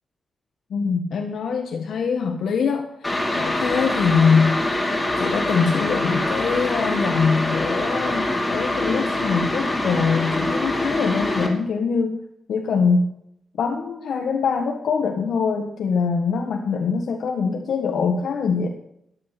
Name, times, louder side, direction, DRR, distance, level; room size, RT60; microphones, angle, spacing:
voice 1, 0.7-4.5 5.2-12.2 12.5-13.1 13.6-18.7, left 5 dB, 75° left, 3 dB, 1.6 m, -23 dB
sound 1, 3.0-11.5, left 1 dB, 15° left, 2.9 m, -24 dB
14.0 x 11.0 x 6.1 m, 0.75 s
wide cardioid pair, 175°, 0 cm